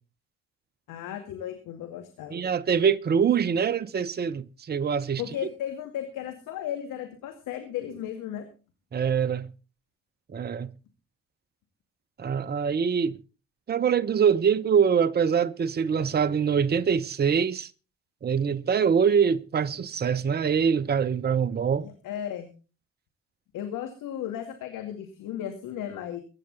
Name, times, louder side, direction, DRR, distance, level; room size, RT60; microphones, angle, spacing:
voice 1, 0.9-2.4 5.2-8.4 21.8-22.5 23.5-26.2, left 10 dB, 55° left, 2.4 m, -35 dB
voice 2, 2.3-5.2 8.9-9.5 10.3-10.7 12.2-13.2 13.7-17.7 18.2-21.9, right 7 dB, 25° right, 0.9 m, -24 dB
22.5 x 9.9 x 4.1 m
figure-of-eight pair, 45°, 37 cm